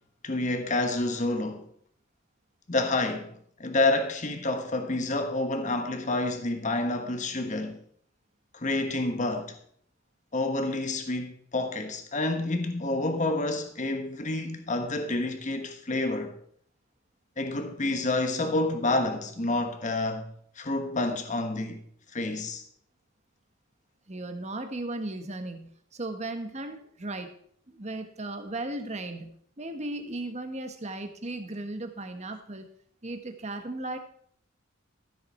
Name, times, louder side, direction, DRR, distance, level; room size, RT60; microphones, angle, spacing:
voice 1, 0.2-1.7 2.7-3.3 3.6-7.8 8.5-9.6 10.3-16.3 17.4-21.8 22.1-22.6, left 2 dB, 40° left, 1.2 m, -28 dB
voice 2, 24.1-27.3 27.7-32.7 33.0-34.0, right 2 dB, 35° right, 1.3 m, -36 dB
13.5 x 7.8 x 4.4 m
head